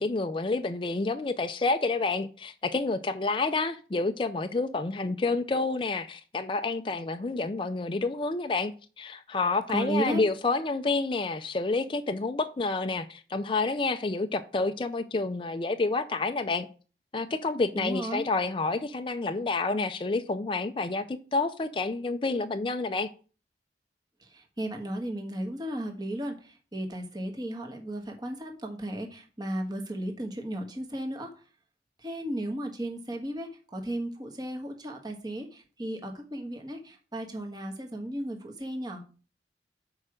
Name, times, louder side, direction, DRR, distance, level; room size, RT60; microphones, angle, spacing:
voice 1, 0.0-8.7 9.0-16.7 17.1-23.1, left 3 dB, 30° left, 8 dB, 0.4 m, -29 dB
voice 2, 9.7-10.2 17.7-18.2 24.2-31.3 32.0-39.0, right 1 dB, 25° right, 3 dB, 1.3 m, -35 dB
6.6 x 4.8 x 6.3 m, 0.37 s
head